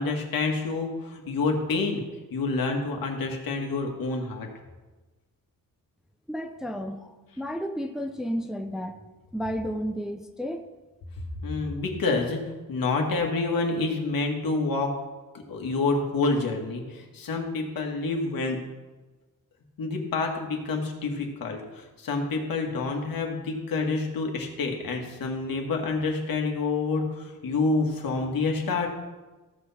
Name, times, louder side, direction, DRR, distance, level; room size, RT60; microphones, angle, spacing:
voice 1, 0.0-2.0 2.3-4.5 11.4-12.4 12.7-14.9 15.5-18.6 19.8-28.9, left 3 dB, 70° left, 2 dB, 1.8 m, -28 dB
voice 2, 6.3-9.0 9.3-10.6, equal, ahead, 5 dB, 0.6 m, -32 dB
14.5 x 6.0 x 4.3 m, 1.2 s
cardioid pair, 125°, 35 cm